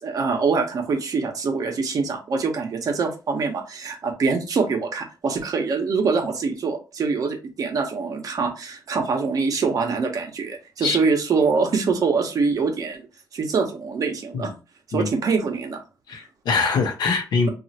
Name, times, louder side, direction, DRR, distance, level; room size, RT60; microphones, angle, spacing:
voice 1, 0.0-13.1 13.3-14.5 14.9-15.8, right 4 dB, 55° right, 4 dB, 0.8 m, -24 dB
voice 2, 16.1-17.5, left 4 dB, 75° left, 4 dB, 0.8 m, -23 dB
3.0 x 2.4 x 2.8 m, 0.31 s
cardioid pair, 120°, 7 cm